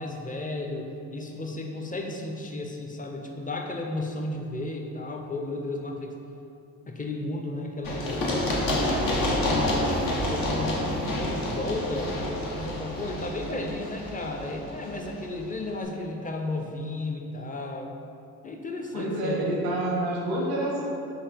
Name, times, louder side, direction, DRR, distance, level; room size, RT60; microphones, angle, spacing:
voice 1, 0.0-6.2 6.9-9.9 10.3-17.9 18.4-19.5, left 2 dB, 20° left, 2 dB, 0.6 m, -34 dB
Run, 7.8-15.5, left 1 dB, 65° left, 0.9 m, -28 dB
voice 2, 18.9-20.8, right 1 dB, 85° right, -3 dB, 0.8 m, -28 dB
4.0 x 2.9 x 4.4 m, 2.7 s
supercardioid pair, 50°, 36 cm